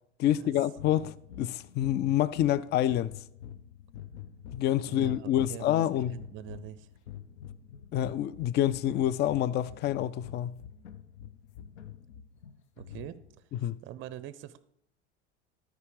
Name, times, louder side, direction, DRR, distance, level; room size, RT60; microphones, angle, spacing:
voice 1, 0.2-3.1 4.5-6.2 7.9-10.5 13.6-13.8, left 12 dB, 30° left, 0.4 m, -27 dB
sound 1, 0.7-13.4, left 10 dB, 75° left, 0.8 m, -47 dB
voice 2, 4.9-6.9 12.8-14.6, right 12 dB, 35° right, 0.5 m, -44 dB
13.0 x 4.8 x 4.8 m
hypercardioid pair, 70°, 34 cm